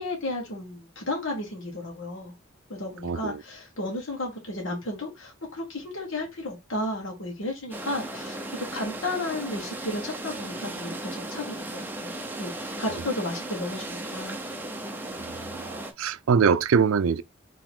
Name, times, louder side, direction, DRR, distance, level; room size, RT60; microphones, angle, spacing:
voice 1, 0.0-2.3 2.7-14.4, left 1 dB, 70° left, 1.5 m, -33 dB
voice 2, 3.0-3.4 15.2-17.2, right 6 dB, 90° right, 0.4 m, -24 dB
sound 1, 7.7-15.9, right 1 dB, 10° right, 0.6 m, -36 dB
4.8 x 3.0 x 3.6 m
head